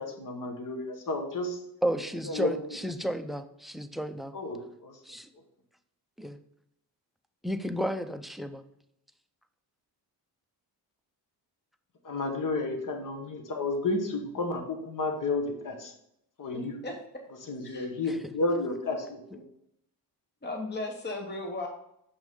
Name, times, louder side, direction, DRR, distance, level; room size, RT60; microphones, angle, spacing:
voice 1, 0.0-1.6 2.2-2.6 4.3-5.0 12.0-15.9 16.4-16.8 17.4-19.4, left 2 dB, 50° left, 5 dB, 1.4 m, -32 dB
voice 2, 1.8-4.3 5.0-5.3 6.2-6.4 7.4-8.6, equal, ahead, 10 dB, 0.4 m, -32 dB
voice 3, 16.5-16.9 17.6-17.9 20.4-21.7, left 2 dB, 25° left, 2 dB, 1.1 m, -36 dB
6.4 x 6.0 x 3.7 m, 0.75 s
cardioid pair, 120°, 42 cm